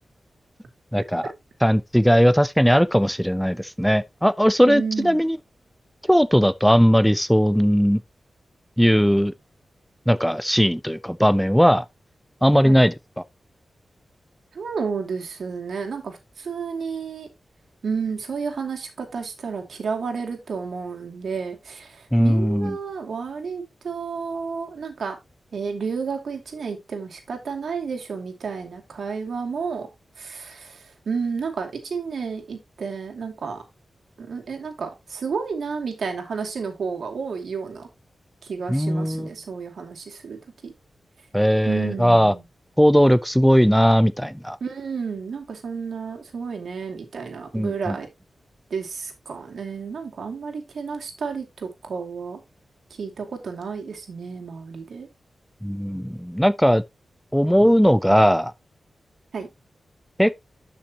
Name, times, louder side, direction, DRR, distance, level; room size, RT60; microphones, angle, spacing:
voice 1, 0.9-1.3 1.6-5.4 6.1-8.0 8.8-9.3 10.1-11.8 12.4-12.9 22.1-22.8 38.7-39.3 41.3-42.3 42.8-44.6 47.5-47.9 55.6-56.8 57.3-58.5 60.2-60.3, equal, ahead, 0.4 m, -18 dB
voice 2, 4.6-5.2 12.6-12.8 14.5-17.3 17.8-25.2 25.5-29.9 30.2-33.6 34.2-37.9 38.4-40.7 41.7-42.4 44.6-48.1 48.7-52.4 53.0-55.1 59.3-59.5, right 5 dB, 80° right, 2.4 m, -31 dB
11.5 x 5.9 x 2.9 m
wide cardioid pair, 80°, 0 cm